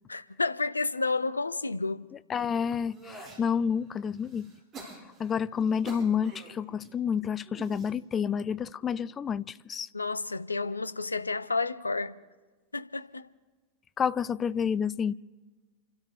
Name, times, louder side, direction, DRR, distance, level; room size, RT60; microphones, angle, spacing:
voice 1, 0.1-2.0 9.9-12.2 12.7-13.3, left 3 dB, 80° left, 0.6 m, -30 dB
voice 2, 2.3-4.5 5.2-9.9 14.0-15.1, left 7 dB, 25° left, 0.5 m, -29 dB
sound 1, 2.4-3.4 4.0-6.9 7.4-7.9 8.7-9.1, right 2 dB, 25° right, 5.7 m, -47 dB
30.0 x 12.5 x 3.4 m
figure-of-eight pair, 90°, 0 cm